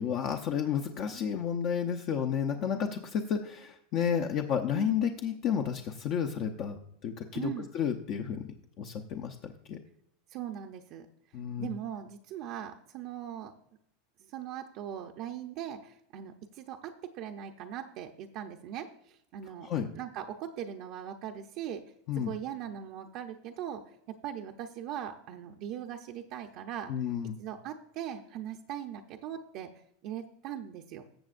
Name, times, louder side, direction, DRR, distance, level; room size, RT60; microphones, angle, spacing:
voice 1, 0.0-9.8 11.3-11.7 19.6-19.9 22.1-22.3 26.9-27.4, left 8 dB, 45° left, 4 dB, 0.7 m, -32 dB
voice 2, 7.3-7.7 10.3-11.1 11.6-13.5 14.2-19.7 19.9-21.8 22.2-23.8 24.1-26.9 27.4-29.7 30.0-31.0, right 10 dB, 50° right, 2 dB, 0.7 m, -40 dB
14.0 x 7.3 x 2.5 m, 0.73 s
supercardioid pair, 140°, 0 cm